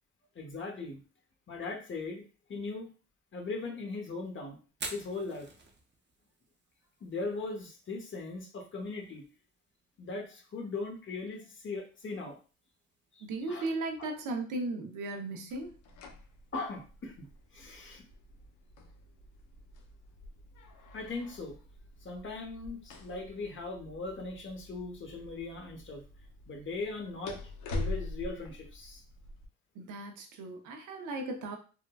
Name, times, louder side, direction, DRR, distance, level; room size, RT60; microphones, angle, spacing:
voice 1, 0.3-1.0 1.5-2.9 3.3-4.6 4.9-5.5 7.0-9.2 10.0-12.4 13.1-13.2 13.5-13.7 14.0-14.1 16.5-18.0 20.9-21.6 22.0-26.0 26.5-27.4 27.7-29.0, left 3 dB, 40° left, 2 dB, 0.9 m, -39 dB
Fire, 4.7-18.6, right 3 dB, 35° right, 0.7 m, -53 dB
voice 2, 13.2-15.8 29.7-31.6, right 2 dB, 80° right, 3 dB, 0.7 m, -36 dB
sound 1, 15.5-29.5, left 1 dB, 90° left, 0.6 m, -45 dB
3.6 x 2.2 x 2.2 m, 0.36 s
cardioid pair, 90°, 30 cm